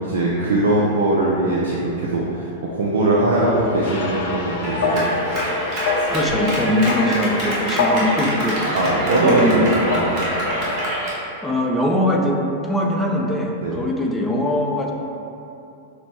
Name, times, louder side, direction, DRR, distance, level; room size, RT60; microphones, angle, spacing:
voice 1, 0.0-5.0 8.7-10.3 10.6-10.7 13.6-13.8, right 2 dB, 65° right, -5 dB, 0.5 m, -20 dB
sound 1, 3.3-10.8, left 3 dB, 55° left, 0.6 m, -26 dB
Clapping, 4.6-11.2, equal, 35° right, 1.2 m, -26 dB
voice 2, 6.1-8.8 9.2-9.6 11.4-14.9, left 1 dB, 5° left, -1 dB, 0.5 m, -22 dB
6.0 x 2.2 x 3.0 m, 2.8 s
figure-of-eight pair, 95°, 0 cm